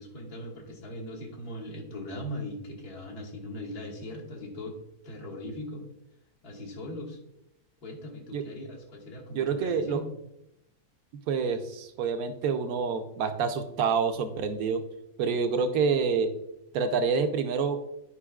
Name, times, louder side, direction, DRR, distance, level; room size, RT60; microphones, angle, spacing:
voice 1, 0.0-4.8 5.0-5.9 6.4-7.2 7.8-10.1, left 1 dB, 70° left, -2 dB, 1.8 m, -39 dB
voice 2, 9.3-10.0 11.3-14.8 15.2-16.3 16.7-17.8, right 5 dB, 70° right, 8 dB, 1.1 m, -27 dB
10.0 x 5.1 x 2.3 m, 0.84 s
omnidirectional pair, 1.7 m